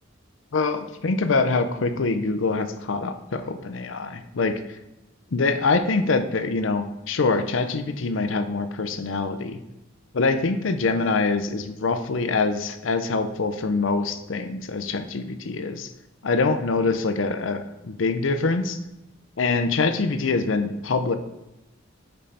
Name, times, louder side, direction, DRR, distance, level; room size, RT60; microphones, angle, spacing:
voice 1, 0.5-4.6 5.3-9.6 10.1-15.9 16.2-18.8 19.4-21.2, left 3 dB, 80° left, 9 dB, 0.6 m, -24 dB
5.3 x 5.3 x 4.2 m, 0.99 s
head